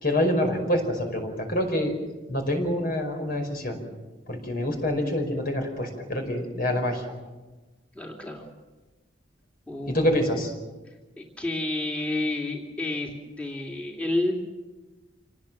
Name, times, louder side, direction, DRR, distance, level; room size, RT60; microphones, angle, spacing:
voice 1, 0.0-1.9 2.3-3.8 4.3-7.0 9.9-10.5, left 1 dB, 55° left, 4 dB, 5.3 m, -26 dB
voice 2, 7.9-8.4 9.7-10.1 11.2-14.3, left 2 dB, 5° left, 0 dB, 2.7 m, -30 dB
27.0 x 19.0 x 7.6 m, 1.2 s
head